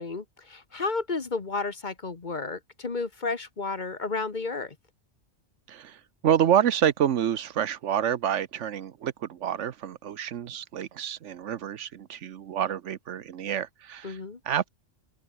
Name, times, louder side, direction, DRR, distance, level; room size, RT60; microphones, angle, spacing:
voice 1, 0.0-4.8 14.0-14.4, left 3 dB, 40° left, 1.4 m, -32 dB
voice 2, 5.7-14.2 14.4-14.7, right 9 dB, 75° right, 1.1 m, -28 dB
open air
omnidirectional pair, 1.3 m